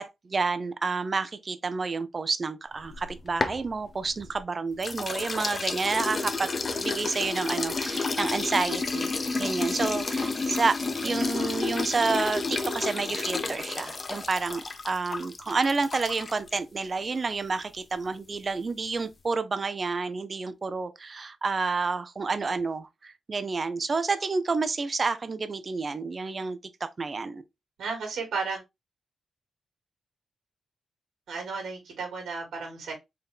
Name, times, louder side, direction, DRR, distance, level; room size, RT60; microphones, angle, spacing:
voice 1, 0.0-6.5 6.8-9.1 9.4-10.8 11.0-27.4, right 4 dB, 45° right, 0.7 m, -29 dB
sound 1, 2.8-4.4 4.8-16.6, left 3 dB, 40° left, 0.7 m, -31 dB
voice 2, 11.0-11.5 27.8-28.6 31.3-32.9, right 4 dB, 85° right, 2.4 m, -34 dB
4.6 x 3.1 x 3.5 m
cardioid pair, 65°, 0 cm